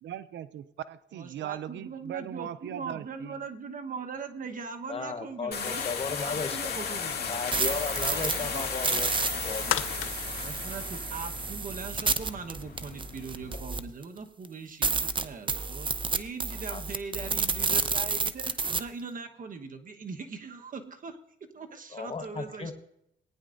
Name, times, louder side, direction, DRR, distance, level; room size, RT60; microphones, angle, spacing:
voice 1, 0.0-3.3, right 11 dB, 65° right, 15 dB, 0.5 m, -39 dB
voice 2, 1.1-7.4 8.1-8.7 10.4-22.7, right 5 dB, 45° right, 6 dB, 1.2 m, -41 dB
voice 3, 4.9-6.7 7.3-10.1 16.7-16.8 21.9-22.7, left 4 dB, 30° left, 8 dB, 1.2 m, -36 dB
sound 1, 5.5-13.6, left 6 dB, 55° left, 2.3 m, -36 dB
sound 2, 7.3-14.0 14.4-14.5 14.8-18.8, right 4 dB, 25° right, 0.7 m, -30 dB
sound 3, 9.2-11.6 12.0-12.1, left 14 dB, 90° left, 0.6 m, -35 dB
18.5 x 9.8 x 2.6 m, 0.79 s
cardioid pair, 90°, 20 cm